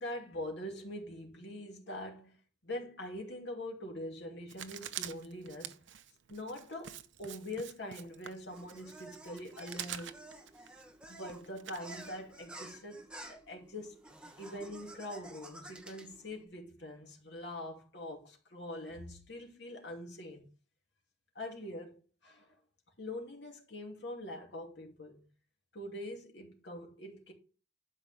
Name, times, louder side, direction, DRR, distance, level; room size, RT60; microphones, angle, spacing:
voice 1, 0.0-2.4 2.6-5.7 6.3-10.2 11.1-14.0 14.4-20.5 21.3-22.5 23.0-25.2 25.7-27.3, left 1 dB, 70° left, 2.7 m, -43 dB
Writing, 4.5-12.4, right 10 dB, 90° right, 0.7 m, -46 dB
sound 1, 8.5-16.4, right 1 dB, 5° right, 1.1 m, -52 dB
12.0 x 5.0 x 3.6 m
head